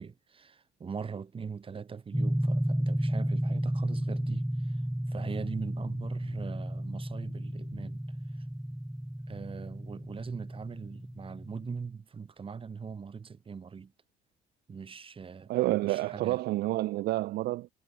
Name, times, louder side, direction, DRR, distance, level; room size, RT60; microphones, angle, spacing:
voice 1, 0.0-4.8 5.1-8.4 9.3-13.9 14.7-16.4, right 5 dB, 30° right, 4.1 m, -41 dB
sound 1, 2.1-11.9, right 1 dB, 5° right, 1.1 m, -33 dB
voice 2, 15.5-17.7, right 17 dB, 75° right, 0.7 m, -29 dB
cardioid pair, 110°, 17 cm